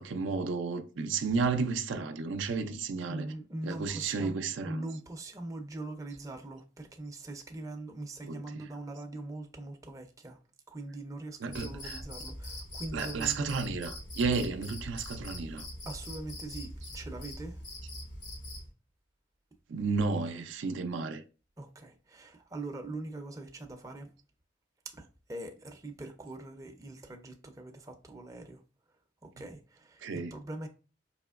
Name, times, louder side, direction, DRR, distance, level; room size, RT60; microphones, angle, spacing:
voice 1, 0.0-3.3 3.6-4.9 8.2-8.6 11.4-12.0 12.9-15.7 19.7-21.2 30.0-30.3, right 4 dB, 80° right, 0.4 m, -32 dB
voice 2, 3.1-10.4 10.7-13.5 15.9-17.6 21.6-24.1 24.9-28.6 29.2-30.7, right 2 dB, 15° right, 0.4 m, -42 dB
Cricket, 11.5-18.7, left 1 dB, 90° left, 2.0 m, -42 dB
4.1 x 2.9 x 2.4 m
head